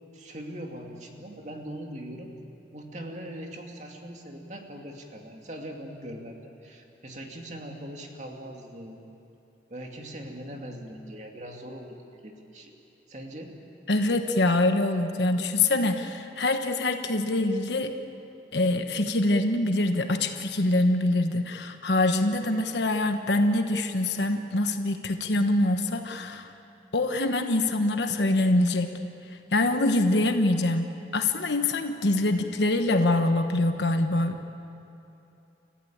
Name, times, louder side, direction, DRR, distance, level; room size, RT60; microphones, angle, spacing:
voice 1, 0.1-2.3 2.7-9.0 9.7-12.0 12.2-12.7 13.1-13.6, right 1 dB, 40° right, 2 dB, 2.4 m, -41 dB
voice 2, 13.9-17.9 18.5-26.5 26.9-28.9 29.5-34.6, left 2 dB, 80° left, 6 dB, 1.2 m, -24 dB
30.0 x 14.5 x 8.7 m, 2.9 s
head